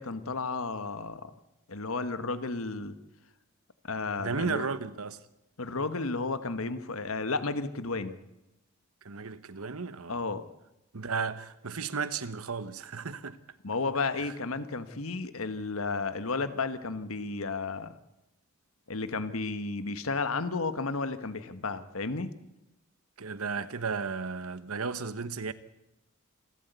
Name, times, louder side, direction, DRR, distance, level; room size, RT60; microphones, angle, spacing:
voice 1, 0.0-1.3 1.7-2.9 3.8-4.7 5.6-8.2 10.1-10.4 13.6-17.9 18.9-22.3, left 3 dB, 80° left, 1.4 m, -33 dB
voice 2, 4.2-5.2 9.0-10.2 10.9-13.4 23.2-25.5, right 5 dB, 85° right, 1.1 m, -34 dB
27.5 x 13.0 x 8.2 m
head